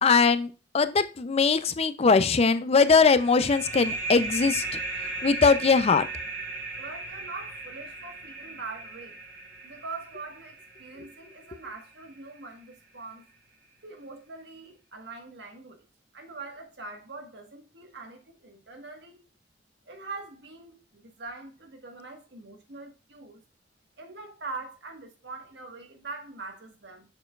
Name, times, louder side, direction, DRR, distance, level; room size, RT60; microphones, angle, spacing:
voice 1, 0.0-4.8 5.2-6.1, left 4 dB, 35° left, 0.5 m, -21 dB
sound 1, 2.8-12.1, right 2 dB, 85° right, 3.3 m, -36 dB
voice 2, 6.8-9.2 9.6-10.5 10.8-13.2 13.8-15.8 16.1-19.2 19.9-23.4 24.0-27.0, right 3 dB, 70° right, 1.4 m, -42 dB
6.7 x 6.7 x 2.4 m
head